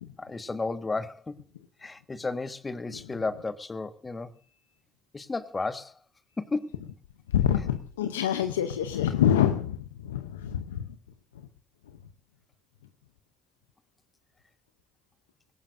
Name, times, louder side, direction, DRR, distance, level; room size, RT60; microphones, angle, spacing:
voice 1, 0.2-1.4 1.8-4.3 5.1-5.9 6.4-6.7, left 3 dB, 30° left, 1.5 m, -33 dB
voice 2, 7.3-10.9, left 10 dB, 90° left, 0.6 m, -26 dB
20.5 x 18.5 x 2.6 m
hypercardioid pair, 45°, 0 cm